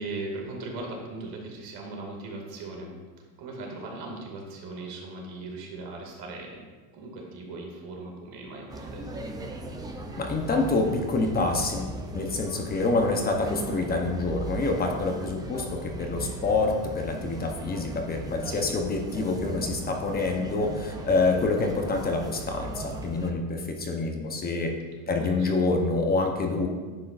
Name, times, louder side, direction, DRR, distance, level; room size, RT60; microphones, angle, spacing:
voice 1, 0.0-2.9 3.4-6.6 6.9-9.0 25.1-25.5, right 2 dB, 55° right, 0 dB, 2.4 m, -38 dB
sound 1, 8.7-23.3, right 2 dB, 10° right, 0.5 m, -38 dB
voice 2, 10.2-24.7 25.1-26.7, left 3 dB, 20° left, 2 dB, 0.9 m, -27 dB
10.5 x 8.4 x 2.5 m, 1.4 s
supercardioid pair, 135°, 45 cm